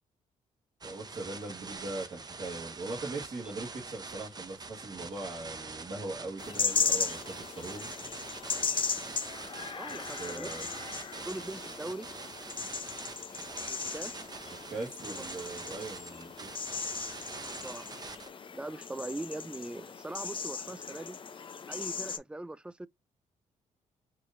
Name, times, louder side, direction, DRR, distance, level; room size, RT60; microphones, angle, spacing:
sound 1, 0.8-18.3, right 4 dB, 30° right, 0.7 m, -44 dB
voice 1, 0.8-7.9 9.9-10.7 14.7-16.5, right 2 dB, 45° right, 1.7 m, -40 dB
sound 2, 6.4-22.2, left 6 dB, 40° left, 0.6 m, -37 dB
voice 2, 9.8-10.5 11.3-12.1 13.7-14.2 15.1-15.2 17.5-17.9 18.5-21.2 21.7-22.9, right 2 dB, 5° right, 0.3 m, -41 dB
4.6 x 2.9 x 2.5 m
cardioid pair, 75°, 13 cm